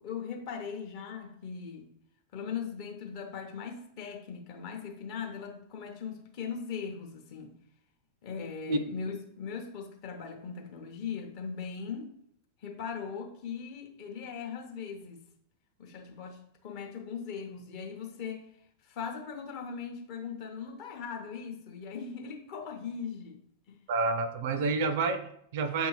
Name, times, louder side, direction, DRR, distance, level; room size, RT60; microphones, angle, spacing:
voice 1, 0.0-1.9 2.3-7.6 8.2-12.1 12.6-15.2 15.8-18.5 18.8-23.4 23.7-23.8, left 6 dB, 45° left, 0.7 m, -39 dB
voice 2, 23.9-25.9, right 3 dB, 50° right, 0.4 m, -29 dB
5.4 x 2.7 x 2.9 m
figure-of-eight pair, 90°, 0 cm